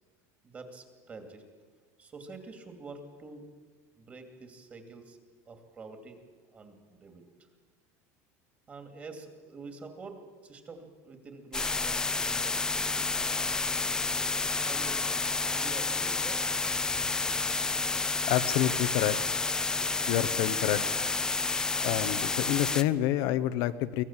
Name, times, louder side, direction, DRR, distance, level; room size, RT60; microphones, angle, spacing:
voice 1, 0.4-1.4 2.0-3.4 4.0-5.2 5.5-6.2 6.5-7.5 8.7-13.1 14.5-15.1 15.5-16.4 16.8-17.3, right 3 dB, 20° right, 6 dB, 2.6 m, -47 dB
sound 1, 11.5-22.8, left 3 dB, 10° left, 0.5 m, -30 dB
voice 2, 18.3-19.2 20.1-20.8 21.8-24.0, left 13 dB, 60° left, 11 dB, 0.9 m, -28 dB
24.0 x 18.5 x 7.4 m, 1.5 s
cardioid pair, 165°, 7 cm